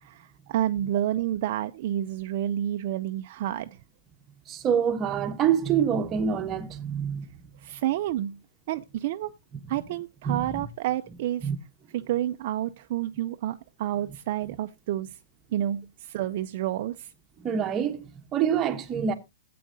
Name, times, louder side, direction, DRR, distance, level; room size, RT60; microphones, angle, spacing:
voice 1, 0.0-3.8 7.6-8.4 8.7-9.3 9.7-11.5 11.9-15.2 15.5-17.1, right 12 dB, 45° right, 0.5 m, -29 dB
voice 2, 4.5-7.3 10.2-10.6 11.4-11.6 17.4-19.1, right 8 dB, 20° right, 1.0 m, -26 dB
15.0 x 8.4 x 2.7 m
hypercardioid pair, 160°, 0 cm